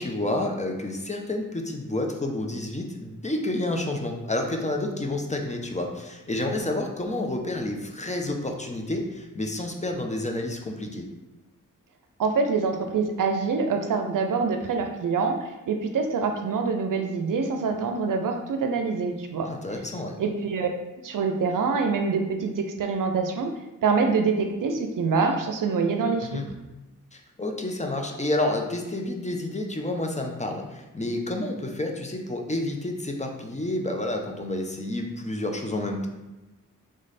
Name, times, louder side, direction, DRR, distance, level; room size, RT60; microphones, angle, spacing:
voice 1, 0.0-11.1 19.5-20.2 26.2-26.5 27.1-36.1, left 1 dB, 20° left, 2 dB, 0.9 m, -29 dB
voice 2, 12.2-15.4 15.7-19.5 20.2-20.7 21.0-23.5 23.8-26.3, right 4 dB, 70° right, 5 dB, 0.6 m, -25 dB
3.7 x 3.2 x 4.1 m, 1.0 s
cardioid pair, 45°, 33 cm